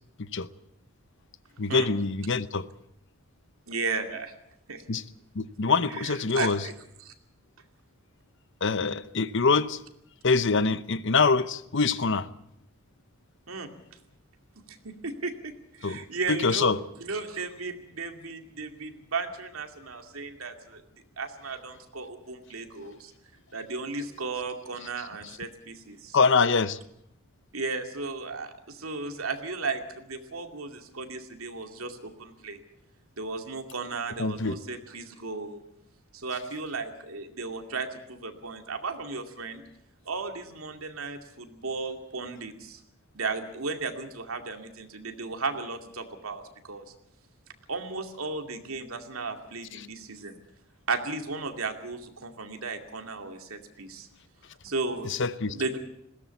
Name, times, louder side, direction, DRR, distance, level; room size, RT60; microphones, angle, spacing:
voice 1, 1.6-2.7 4.9-5.0 5.3-6.6 8.6-9.8 10.2-12.3 15.8-16.8 22.8-22.9 26.1-26.8 34.2-34.6 49.8-49.9 55.0-55.6, left 4 dB, 60° left, 0.8 m, -25 dB
voice 2, 3.7-4.3 4.7-4.8 5.9-6.7 7.0-7.1 13.5-14.0 14.7-16.7 17.0-20.8 21.2-23.1 23.5-26.2 27.5-32.6 33.2-35.6 36.1-39.6 40.0-42.8 43.1-46.9 47.7-50.4 50.9-54.1 54.6-55.8, right 4 dB, 90° right, 2.4 m, -35 dB
20.5 x 17.0 x 8.3 m
head